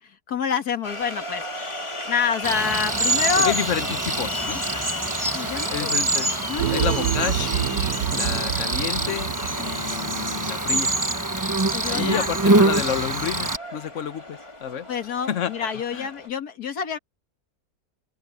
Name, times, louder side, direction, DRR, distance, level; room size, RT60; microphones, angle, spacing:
voice 1, 0.0-3.5 5.3-5.9 6.4-7.0 8.3-8.4 11.4-12.3 14.9-17.0, left 6 dB, 90° left, 2.1 m, -28 dB
sound 1, 0.8-16.3, left 1 dB, 20° left, 1.8 m, -35 dB
Cricket, 2.4-13.6, right 2 dB, 15° right, 1.0 m, -25 dB
voice 2, 3.4-4.6 5.7-7.7 8.1-10.9 11.9-14.9 15.3-15.5 15.9-16.1, left 8 dB, 55° left, 1.2 m, -30 dB
sound 2, 6.6-10.0, right 11 dB, 85° right, 1.3 m, -27 dB
open air
omnidirectional pair, 1.6 m